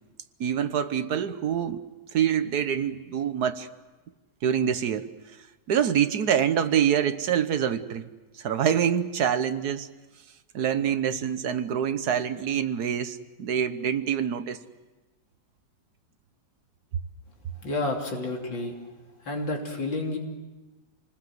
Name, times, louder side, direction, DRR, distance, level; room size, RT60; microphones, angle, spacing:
voice 1, 0.4-1.8 2.1-3.7 4.4-5.1 5.7-8.1 8.4-9.9 10.5-14.6, right 8 dB, 60° right, 11 dB, 1.4 m, -25 dB
voice 2, 17.5-18.8 19.2-20.2, left 2 dB, 70° left, 1 dB, 3.8 m, -30 dB
27.0 x 20.0 x 7.9 m, 1.2 s
omnidirectional pair, 2.1 m